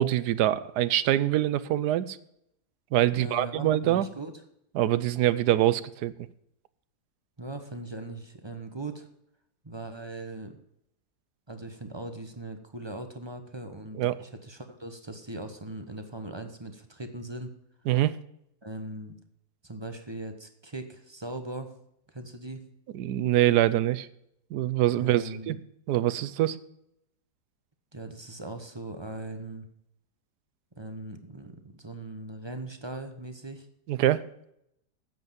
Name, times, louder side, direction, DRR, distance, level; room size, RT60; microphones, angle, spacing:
voice 1, 0.0-2.2 2.9-4.1 4.7-6.1 14.0-14.2 17.9-18.1 22.9-24.1 24.5-25.6 25.9-26.6 33.9-34.2, right 13 dB, 80° right, 16 dB, 1.2 m, -24 dB
voice 2, 3.2-4.4 7.4-9.1 9.6-10.6 11.5-17.5 18.6-19.2 19.6-21.7 22.1-22.7 25.0-25.5 27.9-29.7 30.8-33.7, right 2 dB, 20° right, 7 dB, 0.9 m, -39 dB
9.4 x 8.0 x 7.3 m, 0.77 s
omnidirectional pair, 1.7 m